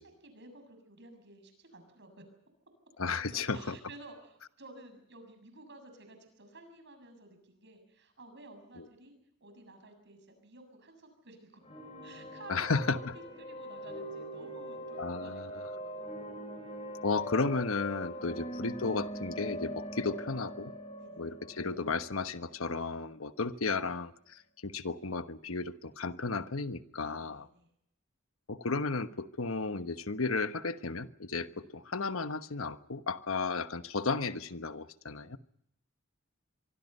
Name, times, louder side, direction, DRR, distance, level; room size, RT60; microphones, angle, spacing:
voice 1, 0.0-2.2 3.2-11.6 12.0-16.1 18.1-18.4 21.0-21.3 23.5-23.9 26.9-27.7 31.5-31.6, right 2 dB, 55° right, 8 dB, 7.0 m, -54 dB
voice 2, 3.0-3.7 12.5-13.0 15.0-15.4 17.0-20.7 21.2-27.4 28.5-35.4, left 4 dB, 75° left, 11 dB, 1.2 m, -34 dB
sound 1, 11.6-23.3, equal, 30° left, 7.9 m, -42 dB
25.0 x 24.5 x 5.5 m, 0.75 s
head